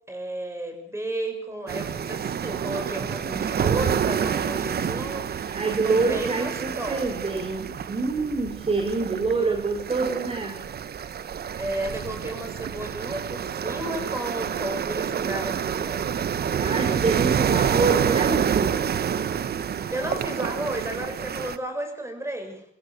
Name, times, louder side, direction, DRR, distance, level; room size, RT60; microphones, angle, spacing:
voice 1, 0.1-5.6 5.8-7.3 9.4-9.6 11.6-16.1 19.9-22.6, right 1 dB, 15° right, 5 dB, 7.0 m, -33 dB
sound 1, 1.7-21.6, right 8 dB, 50° right, 1.2 m, -28 dB
voice 2, 4.6-5.0 5.5-10.6 16.5-19.0, right 3 dB, 30° right, 4 dB, 3.7 m, -27 dB
24.0 x 16.0 x 8.3 m, 0.66 s
cardioid pair, 90°, 20 cm